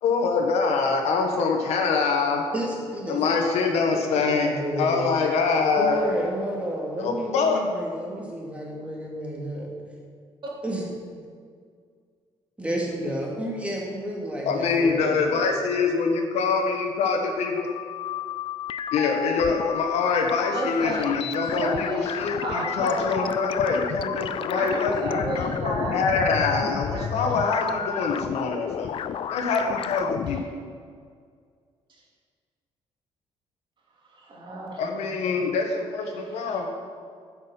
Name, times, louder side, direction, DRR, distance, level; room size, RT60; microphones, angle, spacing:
voice 1, 0.0-2.5 3.1-6.1 7.0-7.6 14.5-17.7 18.9-28.9 29.3-30.4 34.8-36.7, left 4 dB, 80° left, 3 dB, 1.4 m, -24 dB
voice 2, 2.5-3.6 3.9-5.1 5.8-9.7 10.6-10.9 12.6-15.2, right 1 dB, 10° right, -2 dB, 2.8 m, -31 dB
sound 1, 17.2-30.4, left 9 dB, 55° left, 0.5 m, -32 dB
voice 3, 20.5-23.6 24.5-26.1 26.8-27.6 34.0-35.1 36.1-36.6, right 2 dB, 50° right, -2 dB, 2.8 m, -33 dB
9.5 x 6.3 x 7.4 m, 2.1 s
cardioid pair, 100°, 11 cm